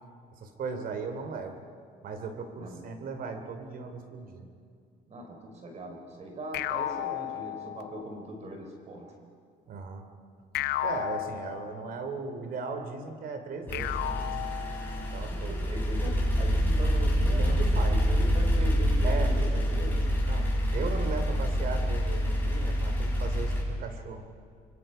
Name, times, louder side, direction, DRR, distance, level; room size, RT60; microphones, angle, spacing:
voice 1, 0.4-1.6 2.0-4.4 9.7-10.1 10.8-14.6 15.0-15.6 17.4-18.0 19.0-19.3 20.3-24.2, right 4 dB, 60° right, 7 dB, 3.0 m, -37 dB
voice 2, 5.1-9.1 15.3-20.2, equal, 40° right, 3 dB, 4.2 m, -40 dB
sound 1, 6.5-8.2 10.5-12.1 13.7-15.2, left 13 dB, 80° left, 0.8 m, -34 dB
sound 2, 13.7-23.6, equal, 10° left, 7.0 m, -26 dB
26.5 x 23.5 x 5.6 m, 2.4 s
cardioid pair, 110°, 17 cm